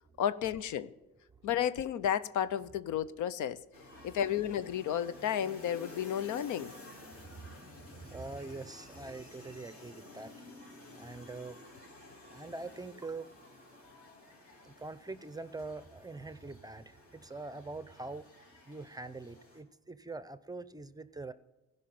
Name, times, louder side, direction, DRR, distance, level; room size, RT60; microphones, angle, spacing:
voice 1, 0.2-0.9 1.4-3.6 4.0-6.7, left 10 dB, 75° left, 0.7 m, -32 dB
sound 1, 3.7-19.6, left 2 dB, 45° left, 3.7 m, -53 dB
voice 2, 8.0-10.3 11.0-11.6 12.3-13.3 14.6-18.3 18.7-21.3, right 3 dB, 15° right, 0.6 m, -44 dB
15.5 x 5.5 x 9.3 m
cardioid pair, 90°, 30 cm